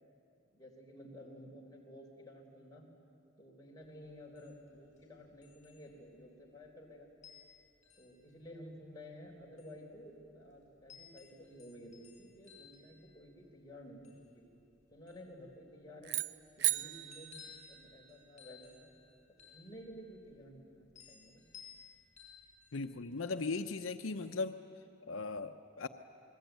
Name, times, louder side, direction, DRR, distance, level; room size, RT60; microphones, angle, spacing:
voice 1, 0.5-2.9 3.4-7.1 8.0-14.4 14.9-16.1 16.6-18.9 19.5-21.4, equal, 20° left, -2 dB, 4.0 m, -53 dB
sound 1, 3.8-22.9, left 7 dB, 35° left, 7.9 m, -60 dB
sound 2, 16.0-18.4, right 14 dB, 55° right, 0.6 m, -37 dB
voice 2, 22.7-24.6 25.1-25.9, left 3 dB, 80° left, 8 dB, 0.8 m, -38 dB
28.0 x 20.5 x 9.2 m, 2.6 s
head